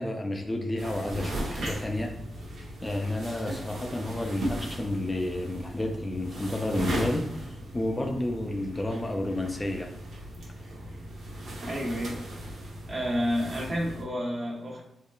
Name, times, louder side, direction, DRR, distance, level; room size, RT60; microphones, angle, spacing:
voice 1, 0.0-2.2 2.8-9.9, left 1 dB, 20° left, 2 dB, 0.4 m, -31 dB
sound 1, 0.8-14.0, right 1 dB, 85° right, 0.9 m, -37 dB
voice 2, 11.6-12.2 12.9-14.8, equal, 45° right, -2 dB, 1.0 m, -30 dB
3.6 x 3.1 x 2.3 m, 0.83 s
cardioid pair, 80°, 0 cm